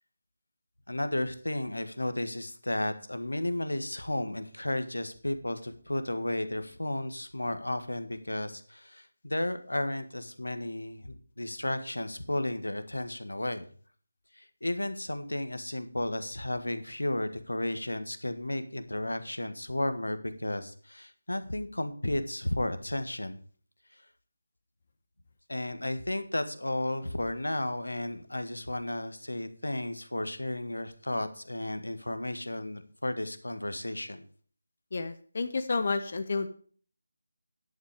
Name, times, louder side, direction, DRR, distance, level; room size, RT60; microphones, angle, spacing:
voice 1, 0.9-13.7 14.3-23.4 25.5-34.3, left 1 dB, 80° left, 10 dB, 1.7 m, -33 dB
voice 2, 34.9-36.5, left 3 dB, 45° left, 9 dB, 1.2 m, -30 dB
10.5 x 8.6 x 4.9 m, 0.44 s
figure-of-eight pair, 160°, 0 cm